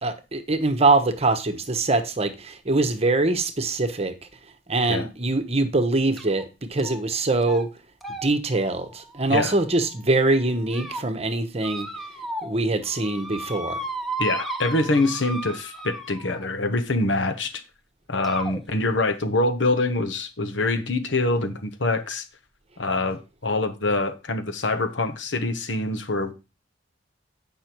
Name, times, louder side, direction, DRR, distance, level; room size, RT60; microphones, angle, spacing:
voice 1, 0.0-4.1 4.7-6.4 6.7-7.7 8.2-11.9 12.4-13.8, right 2 dB, 35° right, 1.0 m, -23 dB
sound 1, 6.2-6.4 6.8-7.2 7.4-7.6 8.0-9.9 10.5-11.0 11.6-12.6 12.9-16.5 17.4-17.5 18.2-18.6, right 2 dB, ahead, 1.1 m, -35 dB
voice 2, 14.2-17.6 18.1-22.2 22.8-26.3, left 2 dB, 75° left, 1.1 m, -25 dB
8.7 x 5.7 x 4.5 m
head